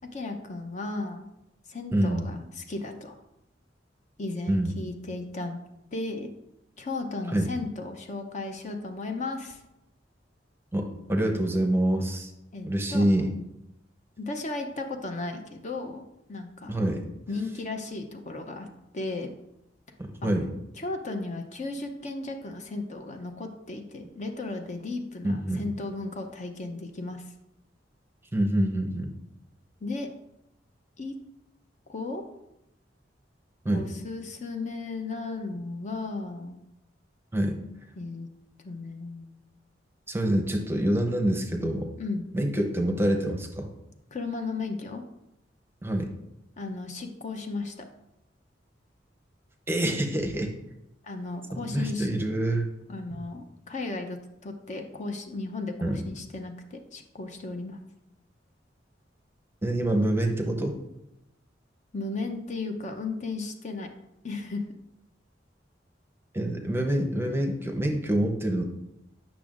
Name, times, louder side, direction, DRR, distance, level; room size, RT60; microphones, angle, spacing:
voice 1, 0.0-1.2 1.7-3.2 4.2-5.6 5.9-6.3 6.8-9.6 12.5-13.3 14.2-16.0 16.3-16.8 17.3-18.7 18.9-19.3 20.2-20.3 20.8-27.2 29.8-30.1 31.0-31.2 31.9-32.3 33.7-36.6 38.0-38.3 38.6-39.4 42.0-42.3 44.1-45.0 46.6-47.7 51.0-52.1 52.9-57.8 61.9-63.9 64.2-64.6, left 3 dB, 40° left, 5 dB, 0.6 m, -35 dB
voice 2, 1.9-2.3 4.5-4.7 7.3-7.5 10.7-12.3 12.6-13.3 16.7-17.1 20.2-20.5 25.2-25.7 28.3-29.1 33.6-33.9 37.3-37.6 40.1-41.9 42.3-43.7 45.8-46.1 49.7-50.5 51.5-52.7 55.8-56.0 59.6-60.8 66.3-68.6, right 1 dB, 15° right, 3 dB, 0.7 m, -26 dB
8.7 x 6.0 x 2.5 m, 0.84 s
head